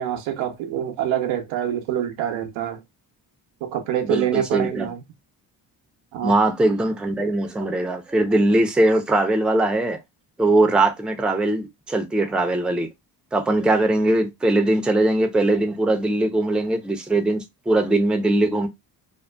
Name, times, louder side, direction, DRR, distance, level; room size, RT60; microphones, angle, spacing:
voice 1, 0.0-2.8 3.6-5.0 6.1-6.3, right 10 dB, 80° right, 0.7 m, -25 dB
voice 2, 4.0-4.9 6.2-10.0 10.4-12.9 13.3-18.7, right 2 dB, ahead, 0.5 m, -21 dB
2.5 x 2.3 x 2.2 m
hypercardioid pair, 45°, 48 cm